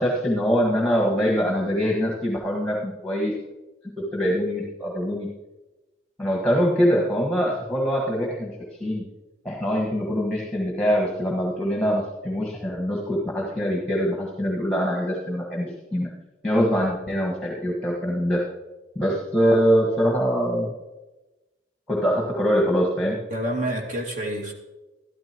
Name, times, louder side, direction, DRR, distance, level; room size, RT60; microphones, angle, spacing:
voice 1, 0.0-3.3 4.1-5.3 6.2-8.5 8.8-9.0 9.5-16.1 16.4-18.4 19.0-20.7 21.9-23.2, equal, 5° left, -3 dB, 1.6 m, -23 dB
voice 2, 23.1-24.5, right 1 dB, 45° right, 0 dB, 2.2 m, -29 dB
13.0 x 12.0 x 3.0 m, 1.1 s
head